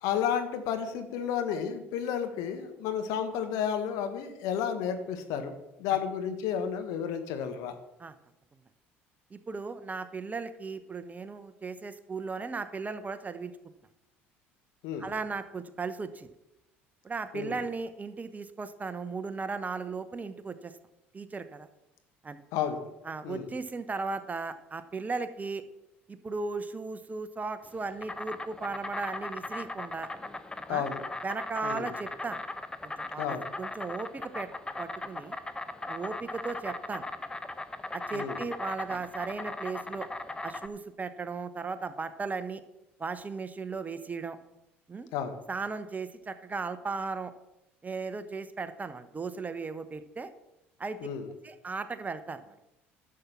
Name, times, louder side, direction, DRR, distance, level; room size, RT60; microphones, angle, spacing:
voice 1, 0.0-5.5 5.8-7.7 14.8-15.1 17.3-17.6 22.5-22.8 23.2-23.5 30.7-31.0 31.6-31.9 33.2-33.5 38.1-38.4 45.1-45.4 51.0-51.2, left 8 dB, 65° left, 8 dB, 1.4 m, -32 dB
voice 2, 9.3-13.5 15.0-16.3 17.0-20.7 21.1-21.7 22.2-22.4 23.0-25.6 26.1-30.1 30.7-30.9 31.2-32.4 32.8-34.5 34.8-35.4 35.9-37.0 37.9-40.1 40.4-42.6 43.0-44.4 44.9-45.1 45.5-47.3 47.8-50.3 50.8-51.0 51.4-52.6, right 4 dB, 25° right, 11 dB, 1.0 m, -36 dB
Insect, 27.6-40.7, left 2 dB, 15° left, 0.9 m, -39 dB
11.5 x 7.4 x 5.8 m, 0.92 s
hypercardioid pair, 65°, 6 cm